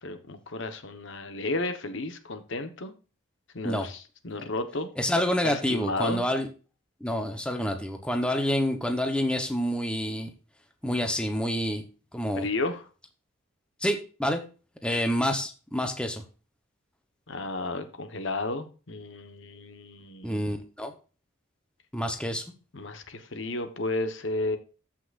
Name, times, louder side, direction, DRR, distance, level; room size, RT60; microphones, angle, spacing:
voice 1, 0.0-2.9 3.5-4.9 5.4-6.3 12.4-12.9 17.3-20.6 22.7-24.6, left 2 dB, 60° left, 8 dB, 1.2 m, -33 dB
voice 2, 5.0-6.5 7.0-10.3 10.8-11.8 12.1-12.5 13.8-14.4 14.8-16.2 20.2-20.9 21.9-22.4, equal, 5° left, 5 dB, 0.9 m, -28 dB
14.5 x 5.9 x 2.5 m, 0.35 s
head